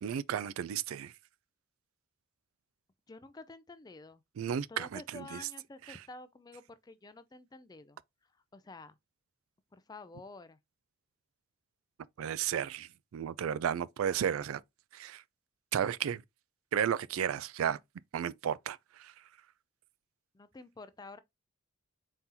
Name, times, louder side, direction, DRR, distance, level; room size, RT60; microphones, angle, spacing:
voice 1, 0.0-1.1 4.4-5.4 5.9-6.0 12.2-14.6 14.9-15.2 15.7-16.2 16.7-17.8 18.1-19.1, right 9 dB, 85° right, 0.3 m, -33 dB
voice 2, 3.1-4.2 4.7-8.0 8.5-8.9 9.7-10.6 20.3-21.2, left 3 dB, 20° left, 0.3 m, -50 dB
4.3 x 3.7 x 2.7 m
head